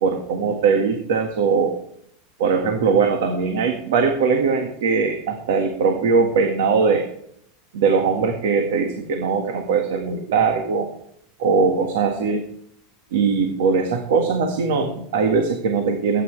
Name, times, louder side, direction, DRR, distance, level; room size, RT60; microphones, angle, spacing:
voice 1, 0.0-1.8 2.4-7.1 7.7-10.9 11.4-12.4 13.1-16.2, right 5 dB, 75° right, 4 dB, 1.8 m, -20 dB
17.5 x 9.8 x 3.3 m, 0.70 s
supercardioid pair, 165°, 0 cm